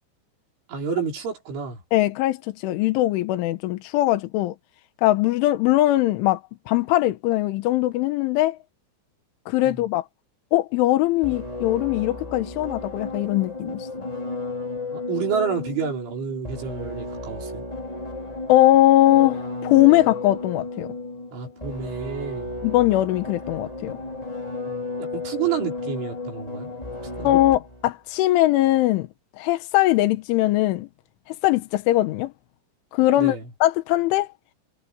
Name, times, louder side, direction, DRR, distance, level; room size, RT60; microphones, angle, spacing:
voice 1, 0.7-1.8 9.6-9.8 14.9-17.6 21.3-22.5 24.7-26.7 27.2-27.3 33.1-33.4, right 6 dB, 80° right, 7.8 m, -29 dB
voice 2, 1.9-4.6 5.0-6.4 6.7-8.6 9.5-10.1 10.5-14.1 18.5-20.9 22.6-24.0 27.3-29.1 29.4-30.9 31.4-32.3 32.9-34.3, left 15 dB, 85° left, 3.6 m, -20 dB
sound 1, 11.2-27.9, left 2 dB, 10° left, 4.3 m, -33 dB
omnidirectional pair, 5.4 m